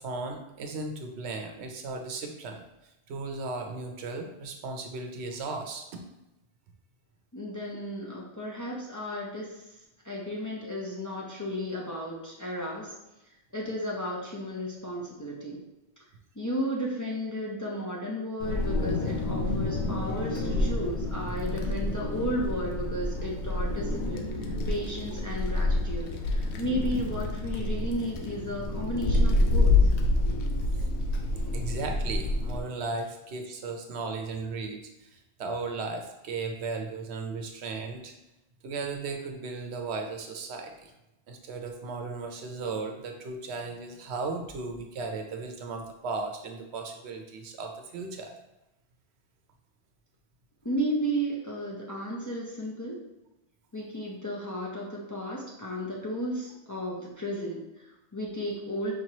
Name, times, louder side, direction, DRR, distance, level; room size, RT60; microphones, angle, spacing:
voice 1, 0.0-2.6 3.1-6.0 30.8-30.9 31.5-38.1 38.6-40.9 41.3-48.3, right 3 dB, 80° right, 4 dB, 0.9 m, -36 dB
voice 2, 7.3-9.7 10.0-12.9 13.5-15.6 16.4-29.9 50.6-53.0 53.7-59.0, equal, 20° left, -4 dB, 0.6 m, -34 dB
Wind, 18.4-32.6, left 2 dB, 85° left, 0.8 m, -28 dB
5.1 x 3.0 x 2.8 m, 0.92 s
omnidirectional pair, 1.1 m